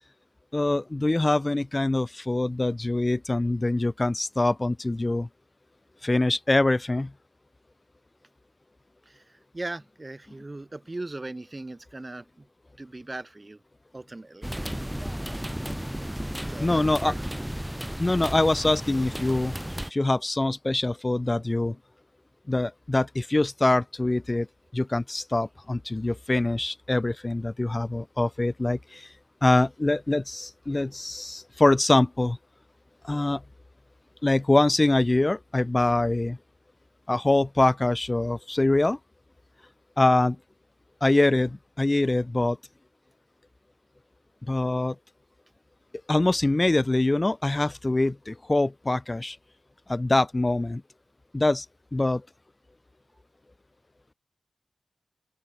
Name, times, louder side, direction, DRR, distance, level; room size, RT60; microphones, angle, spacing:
voice 1, 0.5-5.3 6.0-7.1 16.6-17.1 18.0-19.5 19.9-21.8 22.5-24.5 24.7-29.1 29.4-32.4 33.0-33.4 34.2-36.4 37.1-39.0 40.0-40.4 41.0-42.6 44.5-44.9 46.1-49.4 49.9-50.8 51.3-51.6 51.9-52.2, left 2 dB, 20° left, 2.9 m, -24 dB
voice 2, 9.1-12.5 12.8-13.6 13.9-14.5 16.5-17.2, right 2 dB, 25° right, 2.7 m, -39 dB
sound 1, 14.4-19.9, equal, 5° right, 5.9 m, -33 dB
open air
wide cardioid pair, 125°, 0 cm